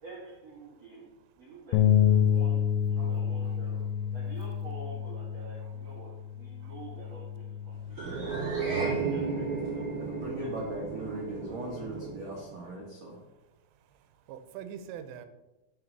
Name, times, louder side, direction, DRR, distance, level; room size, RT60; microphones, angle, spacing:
voice 1, 0.0-8.0 8.7-9.9 10.4-10.5, right 2 dB, 50° right, -5 dB, 1.9 m, -48 dB
sound 1, 1.7-8.0, left 9 dB, 85° left, 2.8 m, -28 dB
sound 2, 7.9-12.5, right 4 dB, 30° right, 4.0 m, -33 dB
voice 2, 8.0-8.4 9.9-13.2, right 2 dB, 70° right, -3 dB, 1.6 m, -39 dB
voice 3, 11.1-11.6 13.9-15.3, right 9 dB, 85° right, 10 dB, 3.2 m, -46 dB
7.7 x 5.9 x 6.7 m, 1.0 s
omnidirectional pair, 5.7 m